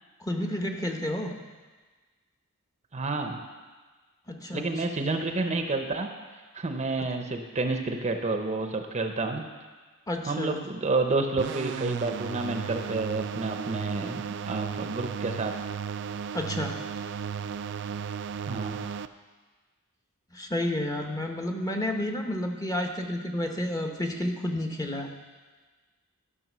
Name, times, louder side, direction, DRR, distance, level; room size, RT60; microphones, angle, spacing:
voice 1, 0.2-1.4 4.3-4.8 10.1-10.6 16.3-16.7 20.3-25.1, left 1 dB, 15° left, 3 dB, 0.9 m, -30 dB
voice 2, 2.9-3.4 4.5-6.1 6.5-9.4 10.3-15.5 18.5-18.8, right 3 dB, 30° right, 5 dB, 0.7 m, -29 dB
sound 1, 11.4-19.1, right 7 dB, 55° right, 0.4 m, -34 dB
12.5 x 6.1 x 6.1 m, 1.4 s
head